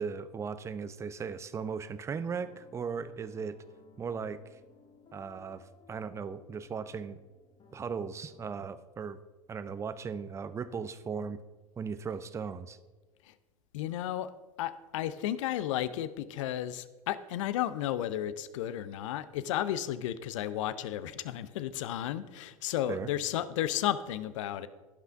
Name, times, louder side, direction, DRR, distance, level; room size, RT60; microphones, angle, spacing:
voice 1, 0.0-3.6 4.0-4.4 5.1-7.2 7.7-9.2 9.5-11.4 11.8-12.8 22.9-23.1, right 6 dB, 15° right, 14 dB, 0.5 m, -37 dB
sound 1, 2.3-8.7, left 4 dB, 25° left, 1.2 m, -59 dB
voice 2, 13.7-14.3 14.6-24.7, left 12 dB, 60° left, 15 dB, 0.6 m, -33 dB
16.5 x 5.7 x 3.5 m, 1.2 s
figure-of-eight pair, 90°, 19 cm